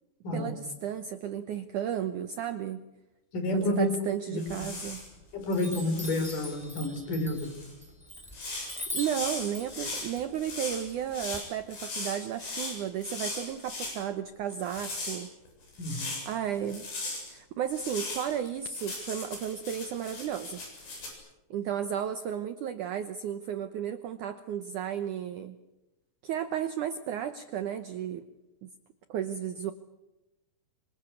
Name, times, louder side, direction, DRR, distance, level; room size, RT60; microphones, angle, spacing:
voice 1, 0.3-2.8 3.5-5.0 8.9-15.3 16.3-16.9 17.3-20.6 21.5-25.6 26.2-28.2 28.6-28.7 29.1-29.7, right 9 dB, 70° right, 10 dB, 1.9 m, -33 dB
voice 2, 3.3-3.9 4.3-4.4 5.3-7.5 15.8-16.1, left 2 dB, 55° left, 7 dB, 5.3 m, -29 dB
sound 1, 4.4-5.1 5.5-6.6 7.4-7.7 8.3-14.0 14.5-16.3 16.7-17.3 17.7-21.1, left 3 dB, 75° left, 9.7 m, -38 dB
Chime, 4.5-5.1 5.5-11.4, left 1 dB, ahead, 2.8 m, -42 dB
27.0 x 24.5 x 8.4 m, 0.97 s
omnidirectional pair, 4.8 m